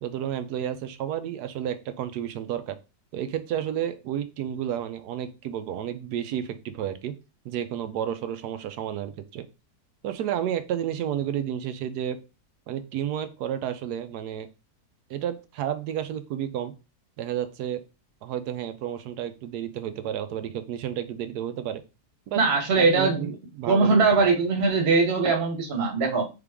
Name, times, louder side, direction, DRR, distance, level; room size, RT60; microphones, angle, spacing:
voice 1, 0.0-2.8 3.1-7.1 7.4-9.5 10.0-12.2 12.7-14.5 15.1-16.7 17.2-17.8 18.2-21.8 22.3-22.4 22.7-24.1, right 10 dB, 75° right, 10 dB, 1.1 m, -31 dB
voice 2, 22.3-23.3 23.7-26.2, right 4 dB, 40° right, 2 dB, 1.2 m, -21 dB
3.8 x 3.7 x 3.5 m, 0.29 s
omnidirectional pair, 1.8 m